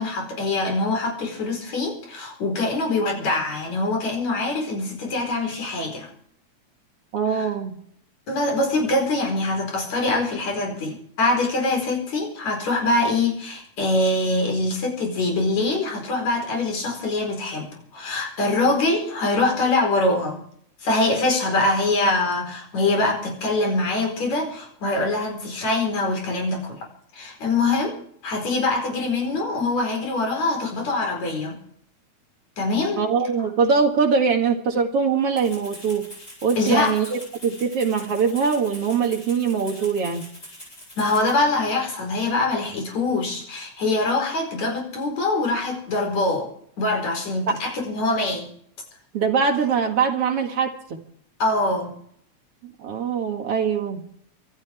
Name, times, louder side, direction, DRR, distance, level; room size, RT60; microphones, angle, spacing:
voice 1, 0.0-6.1 7.3-7.5 8.3-20.4 20.8-26.8 27.1-28.0 28.2-31.6 32.6-33.0 36.6-37.0 41.0-46.5 46.8-48.5 51.4-51.9, left 2 dB, 70° left, 2 dB, 5.8 m, -24 dB
voice 2, 7.1-7.8 33.0-36.1 36.4-40.2 47.5-47.6 49.1-51.0 52.6-54.0, right 5 dB, 55° right, 3 dB, 2.7 m, -22 dB
Rattle (instrument), 35.4-41.4, equal, 20° left, 8.5 m, -43 dB
25.5 x 13.0 x 3.5 m, 0.64 s
omnidirectional pair, 3.3 m